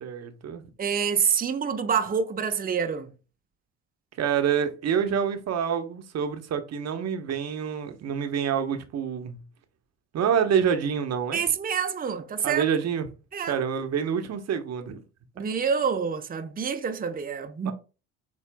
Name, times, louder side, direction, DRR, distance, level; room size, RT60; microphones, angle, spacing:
voice 1, 0.0-0.6 4.2-9.4 10.1-11.4 12.4-13.1 13.5-15.0 17.6-17.7, right 7 dB, 50° right, 1.0 m, -27 dB
voice 2, 0.8-3.1 11.3-12.6 13.3-13.6 15.4-17.7, right 6 dB, 25° right, 0.8 m, -27 dB
7.5 x 3.0 x 2.2 m
hypercardioid pair, 55°, 35 cm